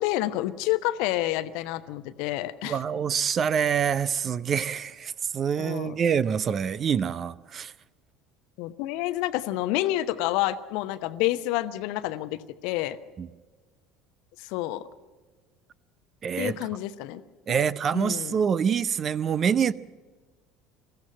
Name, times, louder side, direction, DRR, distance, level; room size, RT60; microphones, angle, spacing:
voice 1, 0.0-2.8 5.6-6.0 8.6-13.0 14.4-14.8 16.4-17.2 17.9-18.4, left 15 dB, 60° left, 0.9 m, -29 dB
voice 2, 2.6-7.7 13.2-13.3 16.2-16.6 17.5-19.7, right 7 dB, 35° right, 0.6 m, -26 dB
22.0 x 15.0 x 8.7 m
figure-of-eight pair, 65°, 0 cm